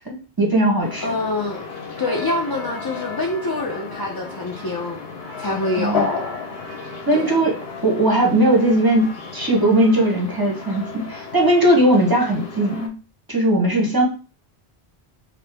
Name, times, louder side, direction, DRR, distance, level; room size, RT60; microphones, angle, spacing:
voice 1, 0.0-1.1 5.8-6.1 7.1-7.6 7.8-12.9 13.3-14.0, right 1 dB, 25° right, 0 dB, 0.8 m, -18 dB
sound 1, 0.8-12.9, left 5 dB, 70° left, 1.0 m, -33 dB
voice 2, 1.0-1.6 2.0-5.0 5.4-6.3 7.1-7.4, left 2 dB, 35° left, -1 dB, 0.4 m, -26 dB
4.8 x 2.0 x 3.4 m, 0.36 s
omnidirectional pair, 1.1 m